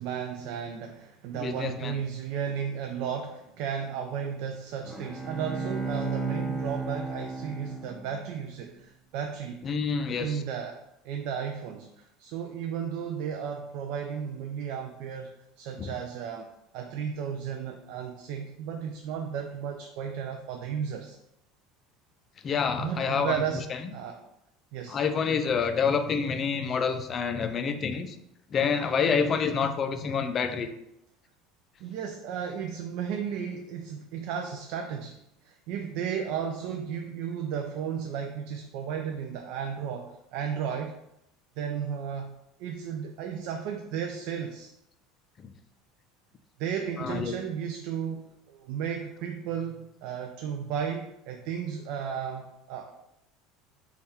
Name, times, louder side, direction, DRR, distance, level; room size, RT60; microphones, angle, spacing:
voice 1, 0.0-9.6 10.2-10.8 11.0-15.3 15.6-21.2 22.8-24.2 24.7-25.0 31.8-35.2 35.4-40.9 41.6-42.3 42.6-44.7 46.6-52.9, right 7 dB, 70° right, 4 dB, 0.3 m, -34 dB
voice 2, 1.3-1.9 9.6-10.4 15.8-15.9 22.4-23.4 23.7-23.8 24.9-28.2 28.5-30.7 47.0-47.3, left 6 dB, 35° left, 8 dB, 0.4 m, -27 dB
Bowed string instrument, 4.8-8.4, right 3 dB, 5° right, 0.7 m, -34 dB
3.5 x 2.3 x 4.1 m, 0.84 s
supercardioid pair, 125°, 0 cm